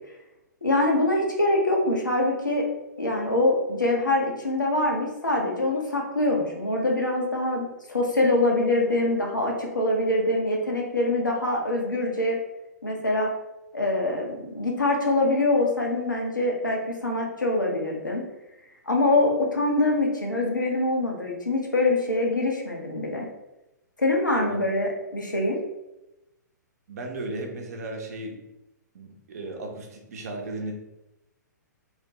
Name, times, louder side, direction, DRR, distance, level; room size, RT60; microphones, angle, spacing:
voice 1, 0.6-2.7 3.0-12.4 12.8-13.3 13.7-18.2 18.9-23.3 24.0-25.6, left 2 dB, 90° left, 0 dB, 0.7 m, -24 dB
voice 2, 26.9-28.4 28.9-30.7, right 2 dB, 55° right, 2 dB, 0.7 m, -35 dB
3.1 x 2.1 x 2.9 m, 0.94 s
figure-of-eight pair, 120°, 10 cm